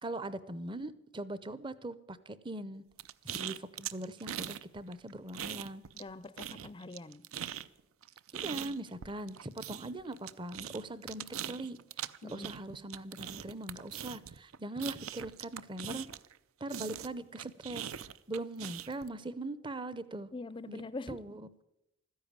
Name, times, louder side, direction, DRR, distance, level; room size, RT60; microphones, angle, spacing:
voice 1, 0.0-2.8 3.2-5.8 8.3-16.0 16.6-17.9 18.3-20.3 20.7-21.5, right 2 dB, 25° right, 0.6 m, -41 dB
sound 1, 3.0-4.6 4.9-6.1 6.4-16.4 16.7-19.1, right 10 dB, 80° right, 0.5 m, -41 dB
voice 2, 5.9-7.2 12.2-12.5 15.8-16.0 20.3-21.2, left 3 dB, 25° left, 0.4 m, -43 dB
13.5 x 10.5 x 8.8 m
head